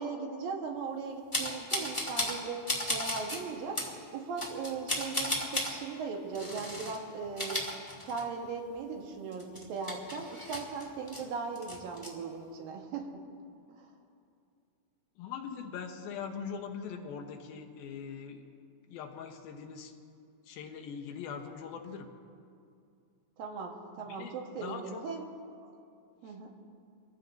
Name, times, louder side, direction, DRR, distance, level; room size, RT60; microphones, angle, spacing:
voice 1, 0.0-3.8 4.1-7.7 8.0-13.2 13.7-14.0 23.4-25.2 25.6-25.7 26.2-26.5, right 5 dB, 80° right, 1 dB, 3.1 m, -38 dB
sound 1, 1.3-2.4 2.7-3.4 3.7-3.9 4.4-5.7 6.3-7.0 7.3-8.5 8.8-8.9 9.3-11.2 11.5-12.1, left 1 dB, 10° left, 1.6 m, -34 dB
voice 2, 15.2-18.5 18.9-19.9 20.4-22.1 24.1-24.3 24.6-25.0 26.2-26.3, left 6 dB, 85° left, 4 dB, 2.9 m, -41 dB
26.0 x 15.0 x 2.7 m, 2.4 s
omnidirectional pair, 4.1 m